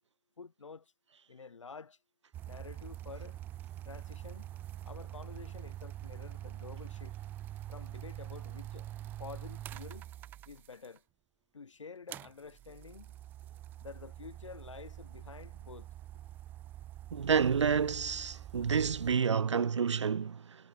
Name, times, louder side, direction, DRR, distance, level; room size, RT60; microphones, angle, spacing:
voice 1, 0.4-0.9 1.3-2.0 2.4-3.4 3.8-4.5 4.8-7.2 7.7-8.9 9.2-10.1 10.4-11.0 11.5-13.1 13.8-15.9, left 5 dB, 70° left, 3.5 m, -49 dB
sound 1, 2.3-11.0 12.1-19.1, right 13 dB, 10° right, 2.9 m, -45 dB
voice 2, 17.1-20.6, right 6 dB, 60° right, 0.6 m, -29 dB
hypercardioid pair, 160°, 17 cm